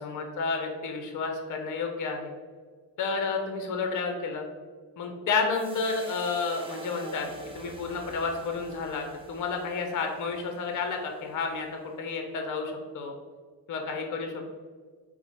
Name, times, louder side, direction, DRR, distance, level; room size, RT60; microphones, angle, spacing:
voice 1, 0.0-2.3 3.0-4.4 5.0-13.1 13.7-14.5, left 4 dB, 40° left, 3 dB, 0.7 m, -31 dB
sound 1, 5.5-11.9, right 3 dB, 10° right, 0.5 m, -48 dB
4.2 x 2.2 x 4.1 m, 1.5 s
supercardioid pair, 75°, 46 cm